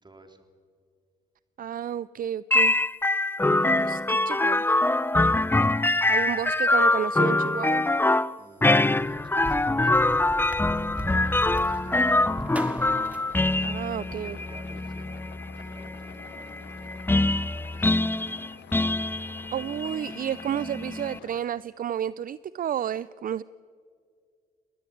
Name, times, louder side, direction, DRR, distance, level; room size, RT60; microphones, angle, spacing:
voice 1, 0.0-0.4 8.4-11.0 11.2-13.0 13.8-16.8 17.7-18.5, right 2 dB, 25° right, 6 dB, 3.7 m, -53 dB
voice 2, 1.6-2.8 3.5-4.8 6.1-7.9 13.6-14.4 19.5-23.4, right 10 dB, 55° right, 19 dB, 0.5 m, -31 dB
sound 1, 2.5-21.2, left 2 dB, 10° left, 0.6 m, -24 dB
sound 2, 9.0-14.1, equal, 10° right, 3.0 m, -38 dB
sound 3, 10.1-21.4, left 11 dB, 85° left, 1.1 m, -49 dB
22.5 x 18.5 x 8.7 m, 2.1 s
supercardioid pair, 50°, 17 cm